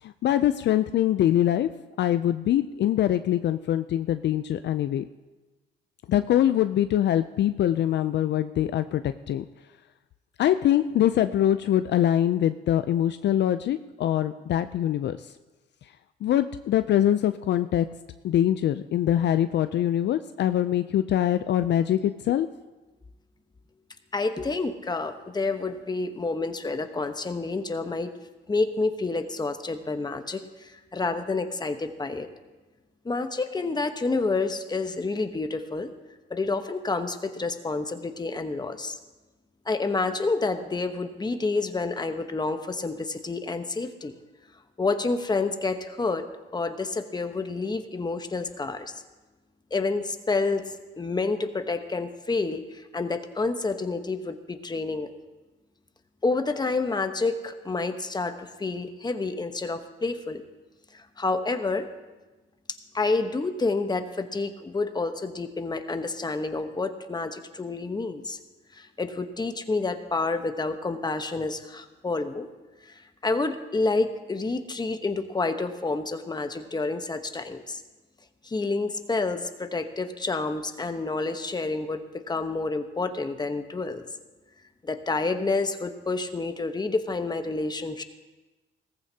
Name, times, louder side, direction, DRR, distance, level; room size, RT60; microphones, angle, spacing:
voice 1, 0.0-1.7 2.0-5.0 6.1-9.4 10.4-15.3 16.2-17.9 18.2-22.5, left 11 dB, 60° left, 11 dB, 0.4 m, -23 dB
voice 2, 24.1-28.1 28.5-32.3 33.0-35.9 36.3-39.0 39.7-44.1 44.8-48.9 49.7-50.6 51.0-55.1 56.2-60.4 60.9-61.9 62.9-68.4 68.7-72.5 72.9-77.8 78.4-84.0 84.8-88.0, left 3 dB, 20° left, 8 dB, 1.0 m, -29 dB
18.0 x 15.0 x 2.8 m, 1.2 s
cardioid pair, 90°, 20 cm